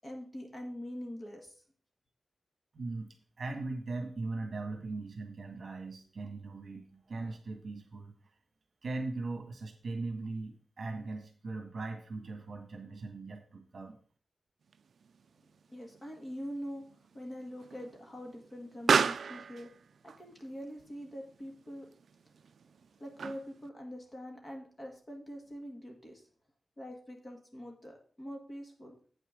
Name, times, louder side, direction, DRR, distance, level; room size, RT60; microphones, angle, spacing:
voice 1, 0.0-1.6 15.7-16.8 17.1-19.7 20.0-21.9 23.0-26.2 26.8-29.0, equal, 25° left, 1 dB, 1.8 m, -44 dB
voice 2, 2.7-8.1 8.8-14.0, right 3 dB, 50° right, 4 dB, 1.7 m, -39 dB
Explosion, 14.7-23.7, right 6 dB, 75° right, 0.3 m, -36 dB
8.3 x 6.3 x 5.1 m, 0.43 s
wide cardioid pair, 155°, 0 cm